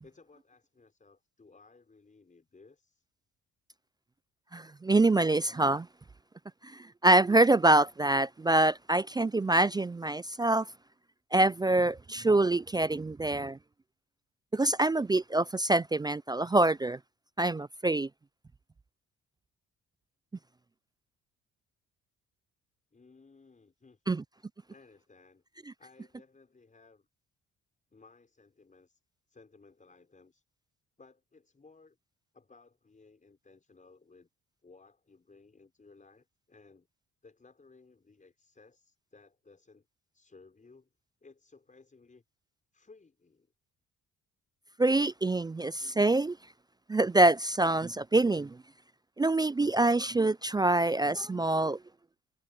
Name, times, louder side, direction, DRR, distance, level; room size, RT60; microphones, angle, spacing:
voice 1, 0.0-3.1 22.9-24.3 24.7-25.4 25.8-27.1 27.9-29.0 29.3-30.4 31.0-32.0 32.3-34.3 34.6-36.9 37.2-39.9 40.1-40.9 41.2-42.2 42.7-43.5, left 4 dB, 25° left, 5.6 m, -59 dB
voice 2, 4.5-5.9 6.7-10.7 11.3-13.6 14.5-17.0 17.4-18.1 24.1-24.2 44.8-46.4 46.9-48.6 49.2-51.8, right 2 dB, 15° right, 0.3 m, -25 dB
cardioid pair, 90°, 30 cm